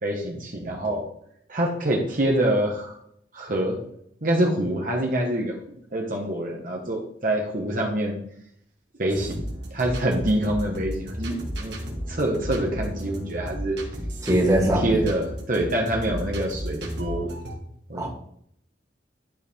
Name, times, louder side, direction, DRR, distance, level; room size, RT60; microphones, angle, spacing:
voice 1, 0.0-1.0 1.5-3.0 3.3-3.8 4.2-5.6 5.9-8.2 9.0-9.4 9.7-11.8 12.1-13.8 14.5-17.3 17.9-18.1, right 1 dB, 50° right, 0 dB, 1.2 m, -25 dB
sound 1, 9.1-17.6, equal, 75° right, 2.0 m, -33 dB
voice 2, 14.2-15.0 18.0-18.1, right 1 dB, 20° right, -1 dB, 2.0 m, -21 dB
11.0 x 4.8 x 3.5 m, 0.69 s
head